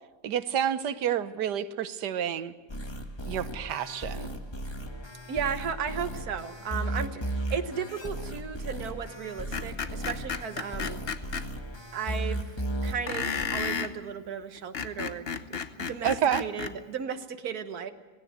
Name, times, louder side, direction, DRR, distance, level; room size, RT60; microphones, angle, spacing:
voice 1, 0.2-2.5 3.3-4.3 16.0-16.4, right 9 dB, 85° right, 13 dB, 1.5 m, -29 dB
sound 1, 2.7-13.5, right 1 dB, 20° left, 1.2 m, -35 dB
voice 2, 5.3-11.0 11.9-17.9, right 7 dB, 65° right, 8 dB, 1.7 m, -35 dB
Screech, 9.5-11.5 13.1-13.9 14.6-16.8, left 6 dB, 45° left, 0.9 m, -32 dB
18.0 x 17.0 x 9.3 m, 1.3 s
omnidirectional pair, 1.8 m